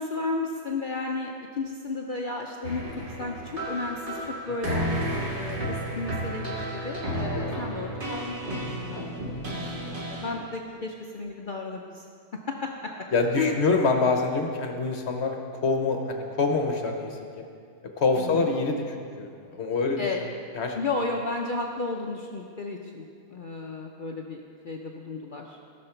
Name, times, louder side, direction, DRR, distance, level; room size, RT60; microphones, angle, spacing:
voice 1, 0.0-2.8 3.2-9.1 9.5-12.1 12.5-12.7 13.4-13.6 18.2-18.5 20.0-20.2 20.7-25.6, left 3 dB, 70° left, 1 dB, 0.4 m, -33 dB
sound 1, 2.6-10.3, right 1 dB, 35° right, 1.7 m, -32 dB
voice 2, 13.1-15.4 15.6-17.4 18.0-20.0 20.5-20.8, left 3 dB, 50° left, 3 dB, 1.1 m, -26 dB
16.0 x 6.4 x 4.4 m, 2.3 s
omnidirectional pair, 1.7 m